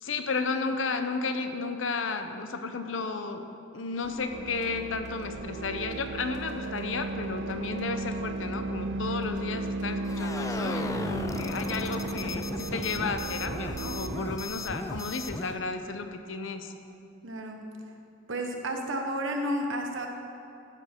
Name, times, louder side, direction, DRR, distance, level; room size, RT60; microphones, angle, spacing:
voice 1, 0.0-3.5 3.7-16.7, left 4 dB, 85° left, 7 dB, 0.7 m, -33 dB
sound 1, 4.0-16.2 16.5-16.7, equal, 40° right, 1.3 m, -50 dB
sound 2, 4.3-14.4, right 2 dB, 60° right, 0.4 m, -35 dB
sound 3, 10.0-15.6, left 2 dB, 15° left, 0.4 m, -36 dB
voice 2, 17.2-17.6 18.3-20.1, right 1 dB, 80° right, 3 dB, 1.2 m, -31 dB
13.5 x 7.0 x 4.4 m, 2.7 s
head